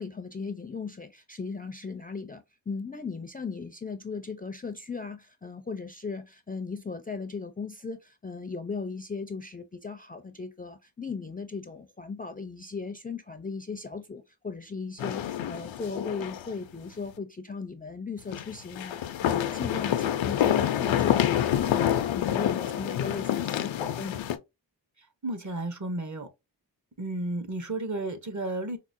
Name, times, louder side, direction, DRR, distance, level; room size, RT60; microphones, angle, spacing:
voice 1, 0.0-24.3, left 4 dB, 20° left, 0.4 m, -37 dB
Group walking in auditorium, 15.0-16.5 16.8-16.9 18.3-24.4, left 11 dB, 90° left, 0.5 m, -27 dB
voice 2, 25.2-26.3 27.0-28.8, right 2 dB, 40° right, 0.8 m, -32 dB
4.8 x 2.0 x 2.5 m
wide cardioid pair, 70°, 45 cm